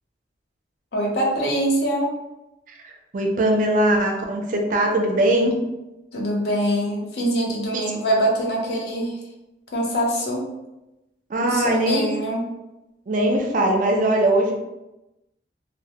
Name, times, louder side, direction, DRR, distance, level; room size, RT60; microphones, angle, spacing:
voice 1, 0.9-2.1 6.1-9.2 9.7-10.4 11.4-12.5, right 1 dB, 65° left, -2 dB, 0.6 m, -23 dB
voice 2, 2.8-5.6 7.7-7.9 11.3-12.1 13.1-14.5, right 1 dB, 45° right, 1 dB, 0.4 m, -21 dB
2.1 x 2.1 x 2.8 m, 0.97 s
head